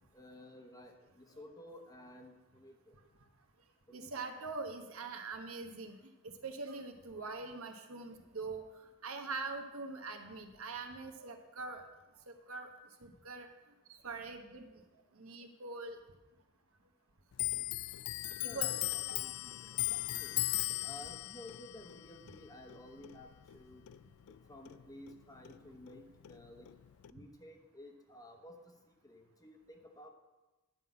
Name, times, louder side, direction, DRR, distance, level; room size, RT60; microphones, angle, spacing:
voice 1, 0.1-2.9 3.9-4.2 18.4-20.4 20.8-23.8 24.5-26.7 27.1-30.1, left 1 dB, 15° left, 4 dB, 1.0 m, -53 dB
voice 2, 3.9-6.0 6.2-8.6 9.0-11.8 12.3-12.7 13.0-13.5 13.9-14.7 15.1-16.0 18.4-18.7, right 3 dB, 70° right, 5 dB, 1.1 m, -43 dB
Clock, 17.3-24.4 24.7-26.0 26.2-27.1, left 17 dB, 75° left, 0.3 m, -38 dB
10.5 x 5.6 x 7.6 m, 1.1 s
head